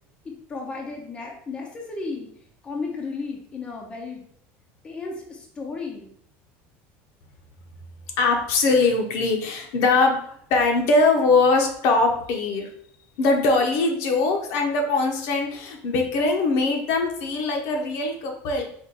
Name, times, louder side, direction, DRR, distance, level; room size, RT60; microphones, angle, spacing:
voice 1, 0.2-2.3 2.6-4.2 4.8-6.1, left 4 dB, 15° left, 0 dB, 0.6 m, -34 dB
voice 2, 8.2-12.7 13.2-18.6, left 3 dB, 60° left, 2 dB, 0.8 m, -21 dB
4.4 x 2.5 x 3.8 m, 0.64 s
cardioid pair, 155°, 6 cm